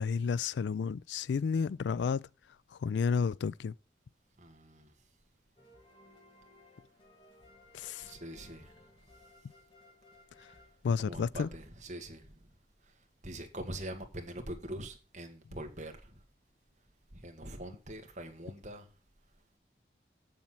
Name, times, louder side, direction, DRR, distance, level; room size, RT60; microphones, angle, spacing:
voice 1, 0.0-2.3 2.7-3.7 7.7-8.1 10.4-10.5 10.8-11.5, left 5 dB, 85° left, 0.3 m, -31 dB
voice 2, 4.4-4.9 8.0-8.9 11.0-12.5 12.8-12.9 13.2-16.2 17.1-18.9, right 1 dB, 40° right, 1.7 m, -44 dB
sound 1, 5.6-11.5, left 2 dB, 30° left, 2.0 m, -60 dB
7.5 x 7.2 x 5.8 m
head